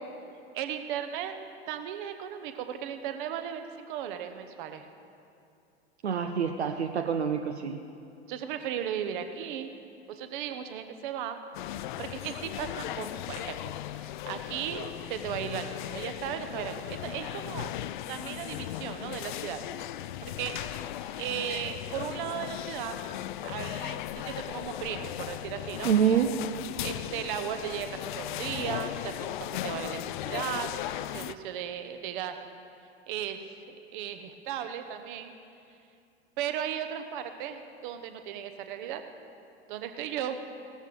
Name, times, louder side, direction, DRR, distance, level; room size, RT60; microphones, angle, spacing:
voice 1, 0.5-1.3 1.7-4.8 8.3-9.7 10.1-11.4 12.0-13.6 13.9-17.7 18.1-19.6 20.4-20.6 21.1-23.0 23.4-25.9 26.8-30.0 30.2-30.7 31.1-32.4 33.1-35.3 36.4-39.0 39.7-40.4, right 9 dB, 50° right, 8 dB, 1.0 m, -36 dB
voice 2, 6.0-7.8 25.8-26.3, right 8 dB, 75° right, 6 dB, 0.6 m, -26 dB
sound 1, 11.5-31.3, left 13 dB, 50° left, 0.4 m, -37 dB
17.0 x 13.5 x 3.3 m, 2.5 s
figure-of-eight pair, 85°, 33 cm